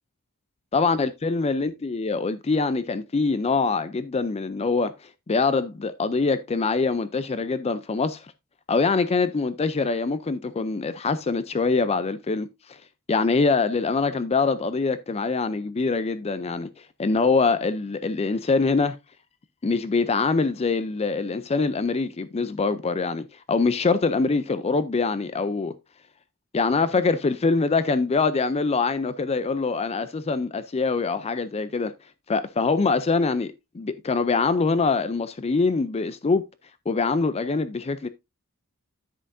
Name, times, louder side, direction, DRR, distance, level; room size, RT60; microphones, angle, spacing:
voice 1, 0.7-8.3 8.7-12.8 13.1-16.7 17.0-19.0 19.6-25.7 26.5-31.9 32.3-36.4 36.9-38.1, left 4 dB, 30° left, 0.4 m, -24 dB
10.0 x 7.7 x 2.6 m
head